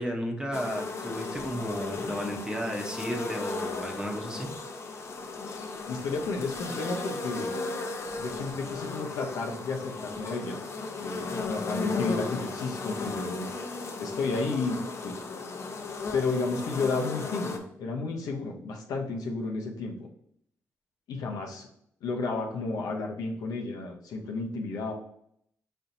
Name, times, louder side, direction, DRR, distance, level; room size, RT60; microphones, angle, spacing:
voice 1, 0.0-4.5, equal, 15° right, 1 dB, 1.0 m, -33 dB
sound 1, 0.5-17.6, left 3 dB, 50° left, 0.7 m, -35 dB
voice 2, 5.5-7.6 8.2-10.6 11.0-13.5 14.0-15.2 16.1-19.9 21.1-21.7 22.0-24.9, left 3 dB, 80° left, 1 dB, 0.8 m, -32 dB
4.5 x 4.2 x 2.7 m, 0.70 s
cardioid pair, 70°, 6 cm